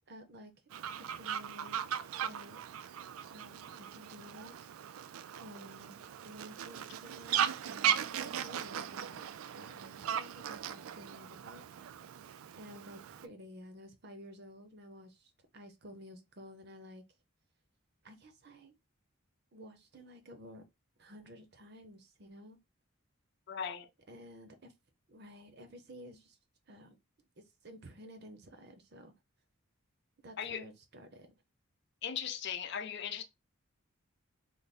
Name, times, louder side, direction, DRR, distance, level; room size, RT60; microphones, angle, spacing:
voice 1, 0.1-0.5 1.1-2.6 3.3-11.8 12.6-17.0 18.0-18.7 19.5-20.6 21.0-22.6 24.1-24.7 25.1-26.4 26.7-27.0 27.4-29.1 30.2-31.3, equal, 50° right, 0.7 m, -53 dB
Fowl, 0.7-13.3, right 9 dB, 80° right, 0.3 m, -38 dB
voice 2, 23.5-23.9 30.4-30.7 32.0-33.2, left 8 dB, 55° left, 0.5 m, -38 dB
3.4 x 2.1 x 4.1 m
head